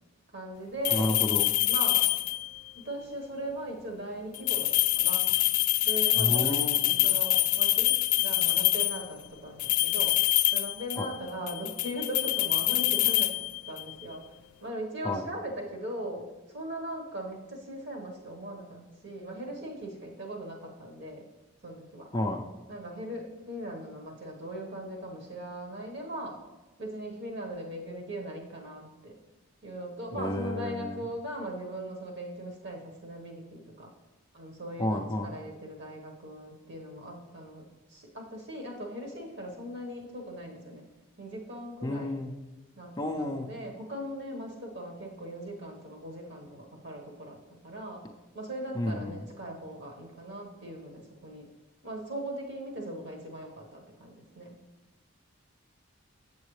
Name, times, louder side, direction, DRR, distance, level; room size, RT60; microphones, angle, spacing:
voice 1, 0.3-1.1 1.7-2.0 2.8-5.3 5.8-10.2 10.5-14.2 14.6-21.2 21.6-22.1 22.7-26.4 26.8-29.2 29.6-33.9 34.3-37.6 37.9-40.8 41.2-42.1 42.7-48.0 48.3-51.4 51.8-54.6, right 1 dB, 55° right, 1 dB, 1.2 m, -39 dB
sound 1, 0.8-2.6 4.3-9.1 9.6-11.2 11.5-13.9, left 17 dB, 90° left, 0.3 m, -26 dB
voice 2, 0.9-1.5 6.2-7.0 11.0-11.1 15.0-15.2 22.1-22.4 30.1-31.0 34.8-35.3 41.8-42.3 43.0-43.5 48.7-49.2, left 1 dB, 20° left, 3 dB, 0.4 m, -31 dB
7.4 x 7.1 x 3.2 m, 1.1 s
head